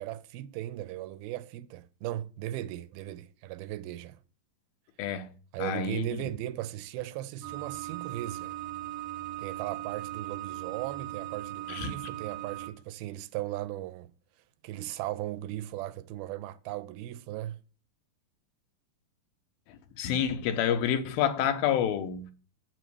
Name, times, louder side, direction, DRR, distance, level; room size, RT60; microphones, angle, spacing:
voice 1, 0.0-4.2 5.5-8.5 9.4-14.1 14.6-17.6, right 14 dB, 85° right, 2.5 m, -37 dB
voice 2, 5.6-6.3 11.7-11.9 19.7-22.3, left 8 dB, 80° left, 2.8 m, -29 dB
sound 1, 7.4-12.7, right 14 dB, 70° right, 2.8 m, -38 dB
8.0 x 6.3 x 6.2 m
omnidirectional pair, 4.3 m